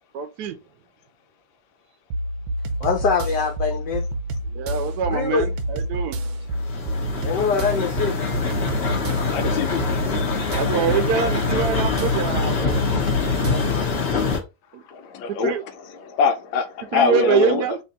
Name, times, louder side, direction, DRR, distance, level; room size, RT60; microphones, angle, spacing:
voice 1, 0.1-0.6 4.5-6.2 10.5-13.0 14.7-14.8 15.4-15.6 16.9-17.8, right 7 dB, 70° right, 1.0 m, -25 dB
sound 1, 2.1-13.8, right 1 dB, 85° right, 1.4 m, -28 dB
voice 2, 2.8-4.0 5.1-5.5 7.2-8.1, left 5 dB, 70° left, 1.3 m, -23 dB
sound 2, 6.5-14.4, left 5 dB, 45° left, 0.9 m, -25 dB
voice 3, 9.2-9.8 13.5-13.6 14.9-15.5 15.9-17.7, left 5 dB, 85° left, 1.4 m, -23 dB
3.5 x 2.8 x 4.0 m
omnidirectional pair, 2.1 m